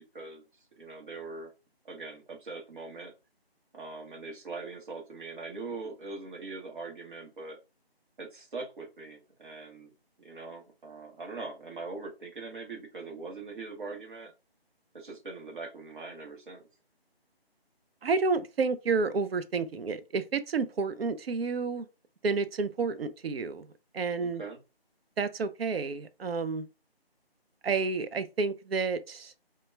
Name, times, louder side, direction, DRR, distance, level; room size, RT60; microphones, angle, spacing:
voice 1, 0.8-1.5 1.8-3.1 3.7-7.6 8.2-9.9 10.2-14.3 14.9-16.6 24.2-24.6, right 3 dB, 55° right, 0.8 m, -42 dB
voice 2, 18.0-21.9 22.2-23.7 23.9-24.4 25.2-26.7 27.6-29.3, right 4 dB, 70° right, 0.5 m, -30 dB
2.2 x 2.1 x 3.0 m
figure-of-eight pair, 165°, 31 cm